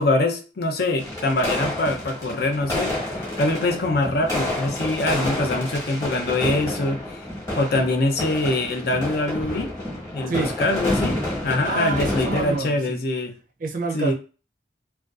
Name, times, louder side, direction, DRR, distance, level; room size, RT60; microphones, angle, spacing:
voice 1, 0.0-7.2 7.6-9.7 10.1-13.3 13.9-14.1, left 2 dB, 55° left, 4 dB, 0.5 m, -24 dB
sound 1, 1.0-12.6, left 1 dB, 15° left, 0.9 m, -29 dB
voice 2, 11.7-13.0 13.6-14.1, right 3 dB, 45° right, 2 dB, 0.4 m, -27 dB
2.4 x 2.2 x 2.4 m, 0.34 s
head